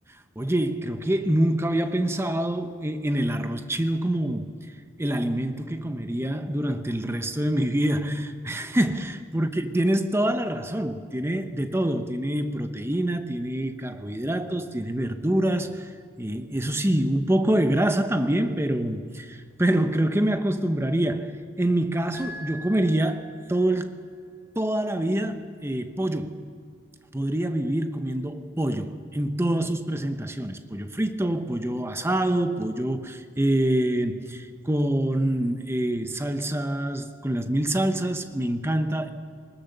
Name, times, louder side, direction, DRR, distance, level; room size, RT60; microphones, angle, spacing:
voice 1, 0.4-4.5 5.0-15.9 16.2-24.0 24.6-26.5 27.1-39.1, right 1 dB, 15° right, 0.9 m, -26 dB
sound 1, 22.1-23.7, left 1 dB, 80° right, 5.7 m, -42 dB
20.5 x 19.0 x 6.7 m
head